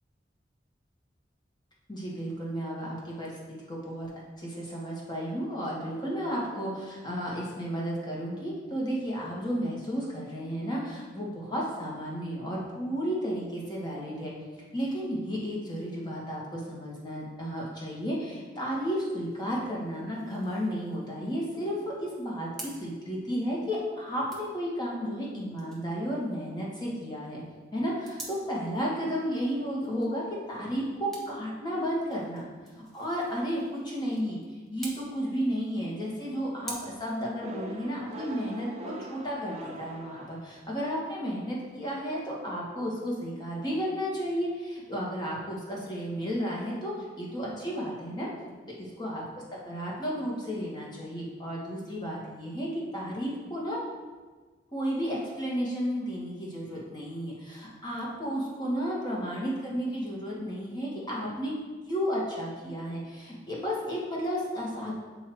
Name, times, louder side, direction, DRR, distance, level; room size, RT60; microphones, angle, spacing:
voice 1, 1.9-4.1 4.4-14.3 14.7-27.4 27.7-32.4 32.8-34.4 34.7-48.3 49.0-49.2 49.6-53.8 54.7-61.5 61.9-64.9, equal, 25° left, -4 dB, 1.3 m, -33 dB
sound 1, 18.7-36.7, right 2 dB, ahead, 0.9 m, -50 dB
sound 2, 37.4-40.9, right 1 dB, 35° right, 0.5 m, -43 dB
7.6 x 2.8 x 4.4 m, 1.4 s
head